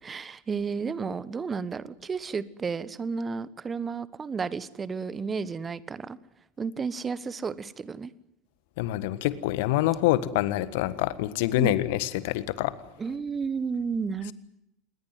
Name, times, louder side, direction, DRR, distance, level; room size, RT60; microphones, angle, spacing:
voice 1, 0.0-6.2 6.6-8.1 11.6-11.8 13.0-14.3, right 5 dB, 25° right, 17 dB, 1.3 m, -32 dB
voice 2, 8.8-12.8, left 15 dB, 60° left, 15 dB, 1.6 m, -26 dB
28.0 x 21.0 x 7.8 m, 0.83 s
figure-of-eight pair, 75°, 0 cm